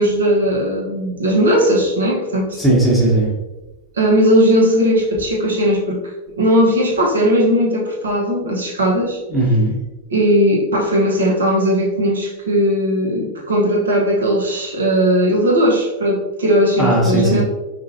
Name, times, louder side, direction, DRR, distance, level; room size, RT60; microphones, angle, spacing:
voice 1, 0.0-2.6 4.0-6.0 6.4-9.2 10.1-17.4, equal, 70° right, -1 dB, 1.0 m, -17 dB
voice 2, 2.6-3.3 9.3-9.7 16.8-17.4, right 1 dB, 5° right, -6 dB, 1.2 m, -16 dB
5.1 x 2.5 x 2.7 m, 1.0 s
figure-of-eight pair, 90°, 0 cm